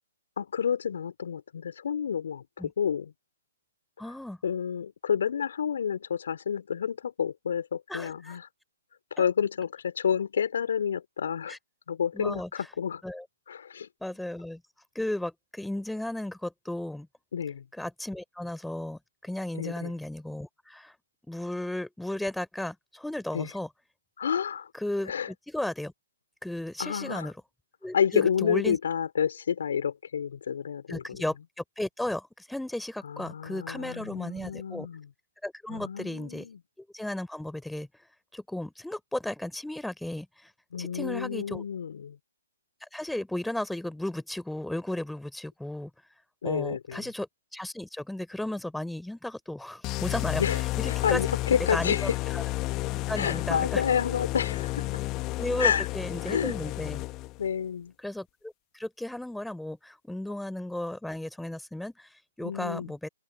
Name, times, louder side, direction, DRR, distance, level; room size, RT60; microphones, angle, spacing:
voice 1, 0.4-3.1 4.4-8.5 9.1-11.6 11.9-13.0 13.5-13.9 17.3-17.6 19.6-19.9 23.3-23.5 24.2-24.7 25.1-25.3 26.8-27.3 27.9-31.2 33.1-35.1 35.7-36.6 40.7-42.2 46.4-47.0 50.4-52.2 53.1-55.0 55.6-55.9 56.2-56.6 57.4-57.9 62.4-62.9, left 7 dB, 65° left, 4.3 m, -29 dB
voice 2, 4.0-4.4 7.9-8.4 9.2-9.3 11.5-11.6 12.1-12.5 13.0-13.2 14.0-14.6 15.0-17.1 17.8-20.9 21.3-23.7 24.7-25.9 26.4-27.3 27.8-28.8 30.9-34.9 35.4-36.5 36.8-37.9 38.3-40.5 40.8-41.6 42.9-45.9 46.4-50.4 50.8-51.2 51.7-52.0 52.3-52.5 53.1-53.8 55.4-57.0 58.0-62.1 62.4-63.1, left 1 dB, ahead, 3.8 m, -34 dB
sound 1, 49.8-57.5, left 20 dB, 25° left, 1.5 m, -31 dB
open air
figure-of-eight pair, 130°, 0 cm